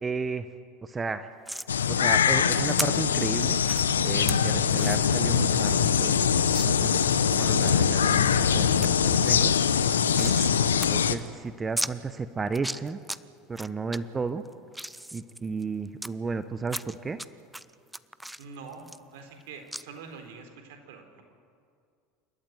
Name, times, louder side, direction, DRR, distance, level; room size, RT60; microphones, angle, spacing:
voice 1, 0.0-0.5 0.8-1.3 1.9-3.6 4.0-6.2 6.6-9.5 10.1-10.4 10.9-13.0 13.5-14.4 15.1-17.2, right 4 dB, 25° right, 11 dB, 1.1 m, -33 dB
sound 1, 1.4-1.7 2.8-2.9 3.6-3.8 4.3-4.4 4.8-5.0 5.4-5.5 5.7-5.8 6.5-6.7 7.2-7.7 8.1-8.5 8.8-8.9 9.2-10.5 10.8-10.9 11.2-11.3 11.8-11.9 12.5-13.2 13.5-14.0 14.4-16.1 16.7-17.3 17.5-19.4 19.7-19.8, right 1 dB, 5° right, 0.7 m, -35 dB
sound 2, 1.7-11.2, left 7 dB, 85° left, 0.9 m, -23 dB
voice 2, 18.4-21.2, right 5 dB, 70° right, 5 dB, 4.0 m, -45 dB
28.5 x 13.5 x 9.5 m, 2.3 s
hypercardioid pair, 80°, 0 cm